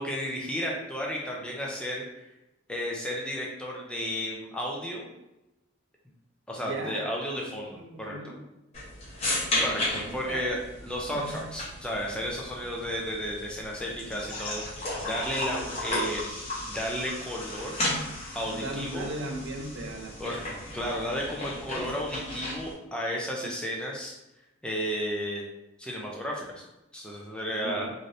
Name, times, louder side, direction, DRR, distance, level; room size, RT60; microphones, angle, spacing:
voice 1, 0.0-2.3 2.7-5.1 6.5-8.2 9.6-14.6 15.0-16.2 16.7-17.8 18.3-19.1 20.2-20.4 20.7-24.1 24.6-25.4 25.8-26.6 26.9-27.9, equal, 5° left, -2 dB, 0.4 m, -33 dB
voice 2, 6.6-7.1 7.4-8.4 10.3-10.5 18.5-20.5 27.6-27.9, right 2 dB, 65° right, 3 dB, 0.5 m, -37 dB
sound 1, 8.7-22.7, left 1 dB, 30° left, 0.9 m, -34 dB
3.2 x 2.6 x 2.6 m, 0.94 s
head